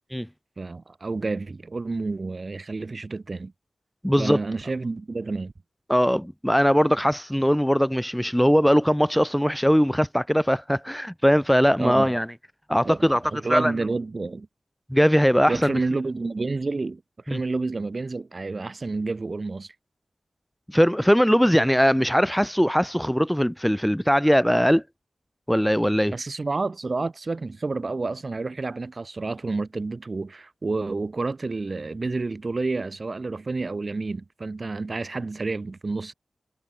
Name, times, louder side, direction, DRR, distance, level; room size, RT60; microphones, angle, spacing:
voice 1, 0.6-3.5 4.2-5.5 11.8-12.1 12.8-13.0 13.3-14.5 15.5-19.7 26.1-36.1, right 3 dB, 45° right, 4.5 m, -29 dB
voice 2, 4.0-4.4 5.9-12.3 12.7-13.2 13.5-13.7 14.9-15.8 17.3-17.4 20.7-24.8 25.5-26.1, equal, ahead, 2.7 m, -20 dB
wide cardioid pair, 75°, 0 cm